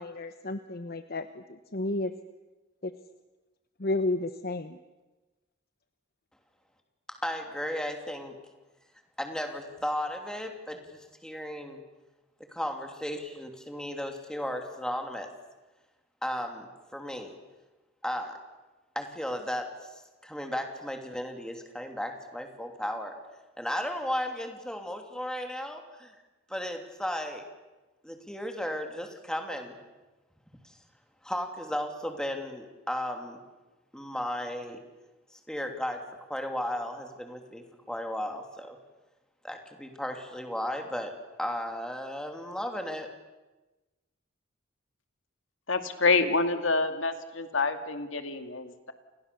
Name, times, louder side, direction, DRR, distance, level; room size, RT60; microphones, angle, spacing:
voice 1, 0.0-2.1 2.8-2.9 3.8-4.8, left 2 dB, 50° left, 9 dB, 1.0 m, -32 dB
voice 2, 7.1-8.4 9.2-11.8 12.5-15.3 16.2-17.3 18.0-18.4 18.9-23.1 23.6-26.1 26.5-27.5 28.0-29.8 30.6-30.7 31.2-33.4 33.9-34.8 35.3-36.0 36.3-38.8 39.4-41.1 41.4-43.1, left 1 dB, 5° left, 4 dB, 3.0 m, -35 dB
voice 3, 45.7-48.9, left 3 dB, 70° left, 7 dB, 2.3 m, -27 dB
29.5 x 28.5 x 7.0 m, 1.1 s
head